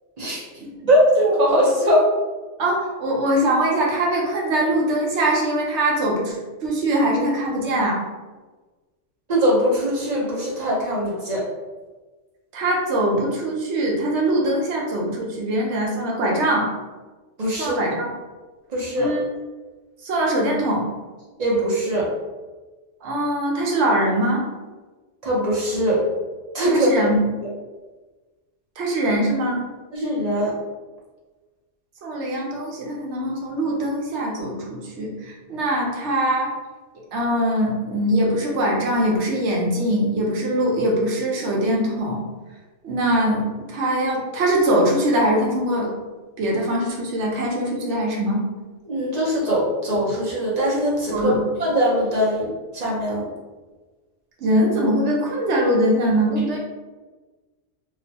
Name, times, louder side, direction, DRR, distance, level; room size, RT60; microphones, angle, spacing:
voice 1, 0.9-2.0 9.3-11.4 17.4-17.8 18.7-19.1 21.4-22.1 25.2-26.0 26.5-26.9 29.9-30.5 48.8-51.3 51.6-53.3, equal, 45° right, -5 dB, 0.6 m, -21 dB
voice 2, 2.6-6.4 6.6-8.0 12.5-16.7 17.6-18.1 18.9-19.2 20.0-20.8 23.0-24.4 26.7-27.2 28.8-29.6 32.0-36.6 37.1-42.2 42.8-45.9 46.4-48.4 51.1-51.4 54.4-56.6, right 1 dB, 70° right, -2 dB, 1.0 m, -22 dB
2.9 x 2.0 x 2.7 m, 1.3 s
omnidirectional pair, 1.3 m